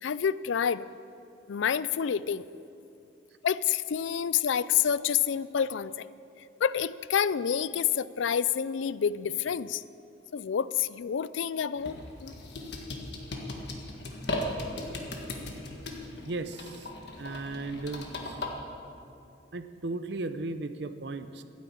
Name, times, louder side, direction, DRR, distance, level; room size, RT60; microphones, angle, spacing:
voice 1, 0.0-0.8 1.5-2.4 3.4-6.0 6.6-9.8 10.3-12.3, left 8 dB, 80° left, 17 dB, 0.4 m, -28 dB
sound 1, 11.8-18.5, left 1 dB, 60° left, 1.7 m, -37 dB
voice 2, 16.2-16.9 17.2-18.4 19.5-21.4, right 2 dB, 65° right, 11 dB, 0.7 m, -36 dB
12.5 x 10.5 x 8.6 m, 2.7 s
head